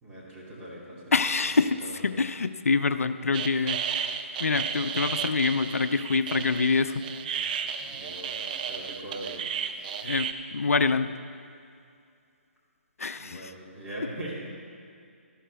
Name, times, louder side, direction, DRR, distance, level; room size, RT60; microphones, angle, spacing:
voice 1, 0.0-1.5 1.8-2.1 7.8-9.4 13.1-14.5, right 1 dB, 15° right, -7 dB, 2.7 m, -41 dB
voice 2, 1.1-4.0 4.4-7.0 10.0-11.1 13.0-13.5, left 4 dB, 85° left, 11 dB, 0.5 m, -26 dB
sound 1, 3.3-10.3, right 7 dB, 35° right, 0.5 m, -33 dB
13.0 x 12.0 x 3.4 m, 2.4 s
figure-of-eight pair, 145°, 8 cm